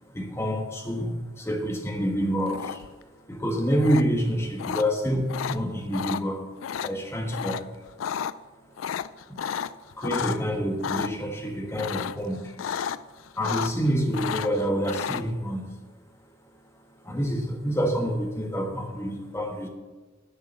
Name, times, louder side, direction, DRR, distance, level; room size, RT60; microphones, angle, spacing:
voice 1, 0.1-6.5 6.8-8.0 9.3-9.4 9.9-12.6 13.1-15.7 16.7-19.7, equal, 15° left, 2 dB, 1.3 m, -28 dB
sound 1, 2.5-3.0 3.8-4.0 4.6-4.8 5.3-5.6 5.9-6.2 6.6-6.9 7.3-7.6 7.9-8.3 8.8-10.4 10.8-11.1 11.8-12.2 12.6-13.0 13.3-13.9 14.1-15.2, left 8 dB, 80° left, 0.4 m, -31 dB
10.0 x 6.8 x 7.3 m, 1.3 s
head